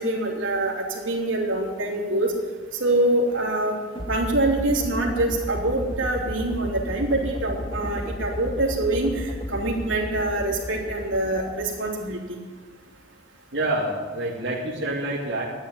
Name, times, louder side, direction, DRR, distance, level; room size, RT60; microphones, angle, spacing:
voice 1, 0.0-2.3 2.7-3.7 4.1-12.4, right 2 dB, 85° right, -1 dB, 3.1 m, -25 dB
sound 1, 3.9-12.1, left 1 dB, 25° left, 0.8 m, -33 dB
voice 2, 13.5-15.4, right 1 dB, 65° right, -5 dB, 2.4 m, -27 dB
12.5 x 9.8 x 9.2 m, 1.5 s
head